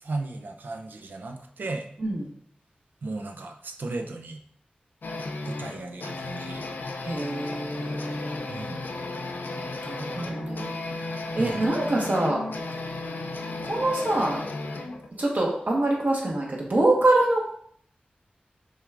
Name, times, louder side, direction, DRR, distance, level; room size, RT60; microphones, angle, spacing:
voice 1, 0.0-1.9 3.0-4.4 5.5-6.7 8.5-8.8 11.4-11.7, right 2 dB, 80° right, 5 dB, 0.5 m, -35 dB
voice 2, 2.0-2.3 7.0-8.4 9.8-10.7 11.3-12.4 13.7-14.4 15.2-17.4, right 2 dB, 60° right, -2 dB, 1.3 m, -25 dB
sound 1, 5.0-15.1, left 2 dB, 90° left, 0.5 m, -34 dB
6.2 x 3.4 x 2.5 m, 0.63 s
wide cardioid pair, 65°, 3 cm